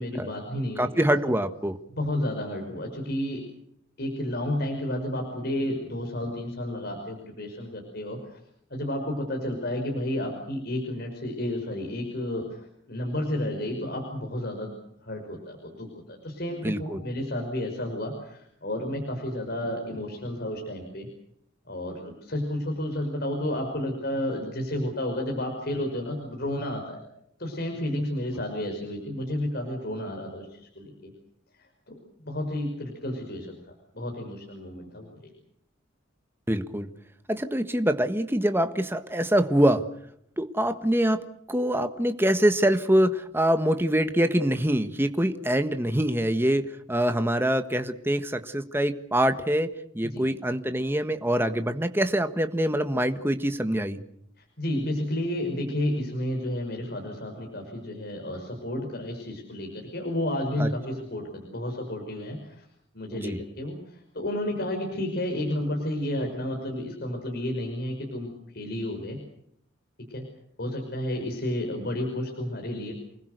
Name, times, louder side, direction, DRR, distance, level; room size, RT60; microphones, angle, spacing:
voice 1, 0.0-0.9 2.0-3.4 4.0-8.4 8.7-14.7 15.0-21.1 21.7-27.0 27.4-31.1 31.6-31.7 32.2-33.5 33.9-35.3 50.0-50.3 54.4-62.6 62.9-69.2 70.1-70.2 70.6-72.9, left 1 dB, 55° left, 2 dB, 5.7 m, -31 dB
voice 2, 0.8-1.8 16.6-17.0 36.5-36.9 37.3-39.8 40.4-41.2 41.5-49.7 49.9-54.0 60.6-60.7 63.1-63.4, right 1 dB, 10° right, 8 dB, 1.5 m, -24 dB
29.0 x 20.5 x 6.7 m, 0.71 s
head